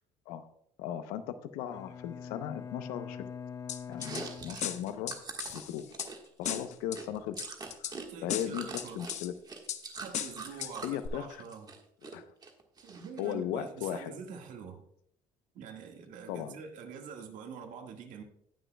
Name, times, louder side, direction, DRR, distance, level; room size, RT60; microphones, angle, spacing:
voice 1, 0.8-3.2 3.9-5.1 5.5-5.8 6.4-7.4 7.8-8.0 8.2-9.3 10.8-11.4 12.1-12.3 13.2-14.1 16.3-16.6, left 10 dB, 90° left, 11 dB, 0.8 m, -37 dB
Bowed string instrument, 1.7-5.3, left 7 dB, 20° left, 0.4 m, -44 dB
sound 1, 3.7-4.2 4.6-6.1 6.5-7.0 7.4-8.0 8.3-9.3 9.7-9.8 10.1-10.7 11.1-11.2, left 10 dB, 55° left, 0.8 m, -36 dB
Chewing mastication, 3.9-8.1 8.3-11.0 11.4-12.1 12.4-13.3, right 4 dB, 30° right, 1.5 m, -43 dB
voice 2, 7.9-9.1 9.9-11.7 12.8-14.8 15.5-18.2, right 6 dB, 65° right, 3 dB, 1.7 m, -45 dB
18.5 x 6.3 x 2.3 m, 0.70 s
cardioid pair, 110°, 14 cm